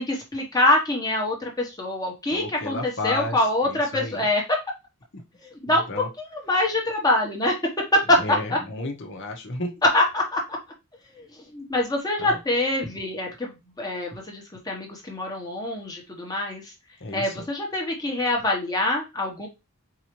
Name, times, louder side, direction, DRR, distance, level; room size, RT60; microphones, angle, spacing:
voice 1, 0.0-4.6 5.4-7.6 7.9-8.6 9.8-10.6 11.0-16.7 17.1-19.5, left 1 dB, 15° left, 0 dB, 1.0 m, -25 dB
voice 2, 2.3-3.4 3.6-4.2 5.7-6.1 8.2-9.8 12.2-12.4 17.0-17.3, left 2 dB, 55° left, 2 dB, 1.0 m, -32 dB
4.7 x 2.8 x 3.1 m, 0.26 s
head